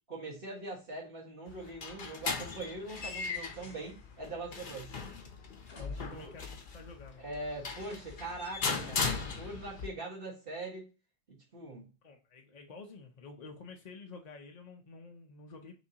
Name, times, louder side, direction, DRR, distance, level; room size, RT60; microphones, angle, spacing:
voice 1, 0.1-4.9 5.8-6.3 7.2-10.9 11.3-11.9, right 2 dB, 55° right, -5 dB, 1.5 m, -42 dB
sound 1, 1.5-9.9, left 4 dB, 60° left, 1.0 m, -38 dB
sound 2, 2.9-4.2 5.6-6.4 6.7-6.8 7.8-8.6, left 2 dB, 85° left, 1.4 m, -58 dB
voice 2, 5.8-7.2 12.0-15.7, left 4 dB, 45° left, 2 dB, 0.7 m, -49 dB
5.7 x 2.6 x 2.8 m, 0.32 s
omnidirectional pair, 1.1 m